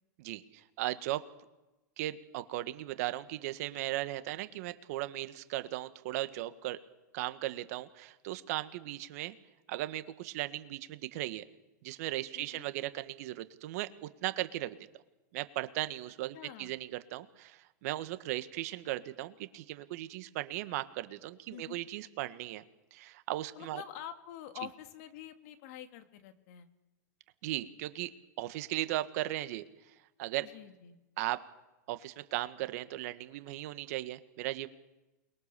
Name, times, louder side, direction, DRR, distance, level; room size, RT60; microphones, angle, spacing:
voice 1, 0.2-1.2 2.0-6.8 7.1-9.3 9.7-11.4 11.8-14.8 15.3-22.6 22.9-23.8 27.4-28.1 28.4-29.6 30.2-30.5 31.2-31.4 31.9-34.7, right 16 dB, 60° right, 11 dB, 1.6 m, -37 dB
voice 2, 12.3-12.7 16.3-16.7 21.5-21.8 23.5-26.7 30.4-31.0, left 11 dB, 55° left, 7 dB, 2.5 m, -47 dB
28.5 x 22.0 x 7.0 m, 1.0 s
hypercardioid pair, 120°, 10 cm